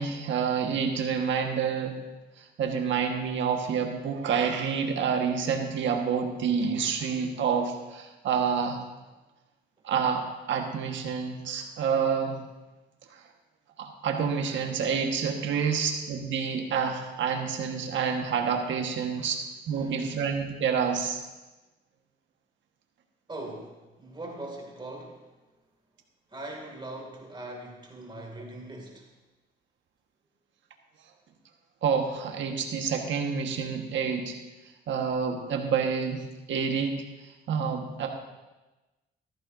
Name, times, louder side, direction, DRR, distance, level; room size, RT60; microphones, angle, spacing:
voice 1, 0.0-2.0 2.4-8.8 9.8-12.4 13.1-13.2 13.8-19.4 19.7-21.2 31.8-34.4 34.9-37.0 37.5-38.1, right 6 dB, 70° right, 3 dB, 1.5 m, -28 dB
voice 2, 15.5-15.9 19.2-19.4 19.7-20.1 23.3-25.4 26.3-29.1, right 1 dB, 25° right, 1 dB, 2.4 m, -41 dB
14.5 x 14.0 x 2.7 m, 1.1 s
cardioid pair, 90°, 20 cm